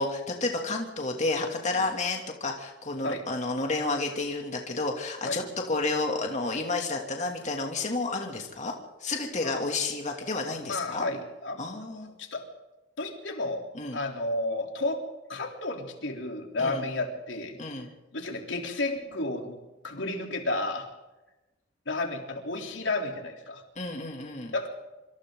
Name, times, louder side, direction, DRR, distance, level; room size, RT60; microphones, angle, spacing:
voice 1, 0.0-11.1 11.6-12.1 13.7-14.0 16.6-16.8 17.6-17.9 23.8-24.5, left 3 dB, 40° left, 1 dB, 2.8 m, -31 dB
voice 2, 10.6-11.6 11.9-12.4 13.0-13.6 13.9-15.0 15.3-17.6 18.1-19.6 19.8-20.9 21.9-23.6 24.5-24.7, left 2 dB, 80° left, 2 dB, 3.6 m, -32 dB
26.0 x 26.0 x 4.0 m, 1.1 s
head